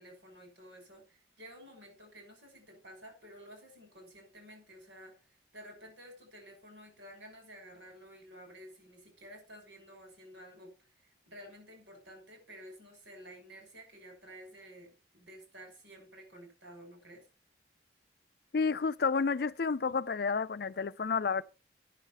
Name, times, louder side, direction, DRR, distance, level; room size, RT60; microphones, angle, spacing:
voice 1, 0.0-5.2 5.5-10.7 11.0-17.2 19.9-20.0, equal, 90° right, 5.8 m, -52 dB
voice 2, 18.5-21.4, left 5 dB, 55° left, 0.5 m, -30 dB
9.7 x 6.6 x 5.6 m
head